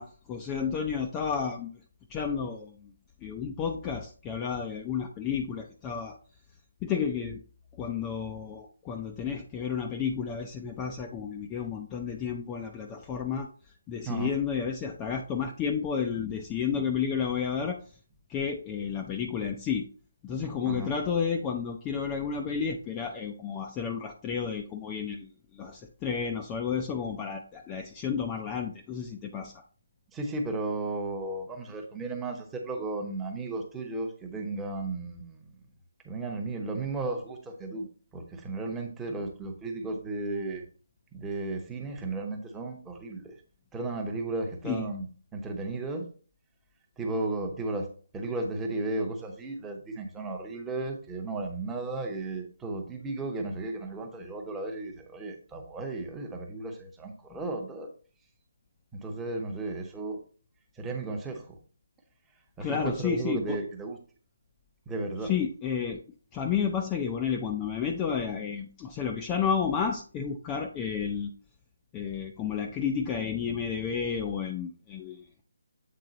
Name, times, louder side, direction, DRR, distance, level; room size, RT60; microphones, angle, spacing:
voice 1, 0.0-1.7 2.1-2.9 3.2-6.2 6.8-7.4 7.8-13.5 13.9-17.8 18.3-19.9 20.2-29.6 44.6-44.8 62.6-63.6 65.2-66.0 66.3-71.3 71.9-75.3, left 7 dB, 15° left, 3 dB, 0.4 m, -31 dB
voice 2, 30.1-35.5 36.0-37.9 38.1-40.6 41.1-43.3 43.7-45.1 45.3-46.0 47.0-47.9 48.1-57.9 58.9-60.2 60.7-61.6 62.6-64.0 64.9-65.3, right 2 dB, 5° right, 2 dB, 0.8 m, -34 dB
7.7 x 3.7 x 3.9 m, 0.40 s
hypercardioid pair, 165°, 0 cm